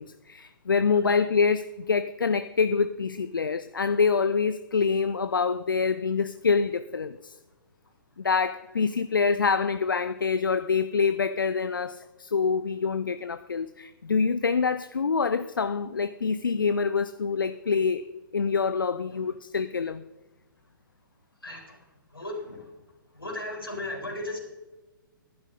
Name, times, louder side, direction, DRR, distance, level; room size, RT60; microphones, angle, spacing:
voice 1, 0.0-7.4 8.2-18.0 18.3-20.0, left 5 dB, 70° left, 0.5 m, -26 dB
voice 2, 21.4-22.7 23.1-24.4, left 1 dB, 85° left, 4.0 m, -37 dB
11.5 x 11.0 x 4.2 m
figure-of-eight pair, 120°, 12 cm